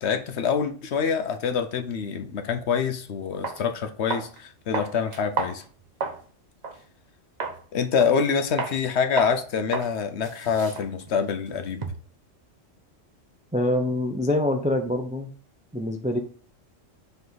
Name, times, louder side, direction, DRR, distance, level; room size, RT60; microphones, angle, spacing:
voice 1, 0.0-5.6 7.7-11.8, left 6 dB, 65° left, 8 dB, 0.9 m, -26 dB
sound 1, 2.9-3.0 3.4-3.6 4.1-4.4 4.7-6.2 6.6-6.8 7.4-7.6 8.0-8.3 8.6-8.8 9.2-9.4 9.7-9.9 10.2-12.1, right 4 dB, 40° right, 0.8 m, -32 dB
voice 2, 13.5-15.3 15.7-16.2, left 1 dB, 10° right, 5 dB, 0.3 m, -25 dB
7.0 x 3.4 x 4.0 m, 0.44 s
omnidirectional pair, 1.3 m